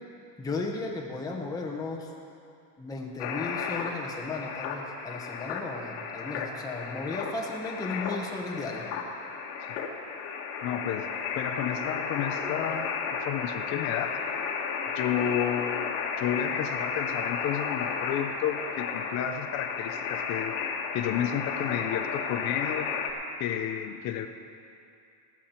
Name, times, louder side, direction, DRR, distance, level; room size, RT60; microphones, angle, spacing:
voice 1, 0.4-2.1 2.8-8.9, left 3 dB, 10° left, 0 dB, 0.9 m, -35 dB
sound 1, 3.2-23.1, left 5 dB, 85° left, 1.6 m, -33 dB
voice 2, 10.6-14.2 14.9-20.6 20.9-22.9 23.4-24.3, left 10 dB, 35° left, 7 dB, 0.4 m, -31 dB
15.5 x 13.0 x 4.4 m, 2.6 s
cardioid pair, 165°, 49 cm